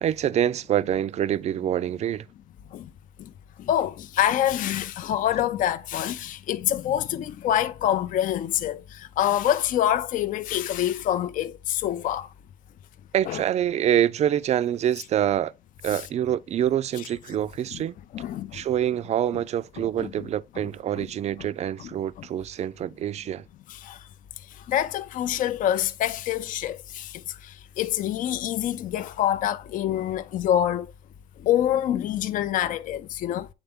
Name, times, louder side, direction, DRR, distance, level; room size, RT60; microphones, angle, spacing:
voice 1, 0.0-2.3 13.1-15.5 15.8-18.0 18.5-23.4, right 10 dB, 40° right, 0.4 m, -26 dB
voice 2, 3.6-12.3 13.3-13.4 15.9-16.0 17.0-17.1 17.7-17.8 18.1-18.6 19.8-20.3 21.0-21.1 21.4-21.5 21.8-21.9 22.2-22.3 23.7-24.1 24.4-30.9 31.4-33.5, left 11 dB, 50° left, 0.4 m, -26 dB
8.0 x 3.4 x 3.6 m
cardioid pair, 110°, 17 cm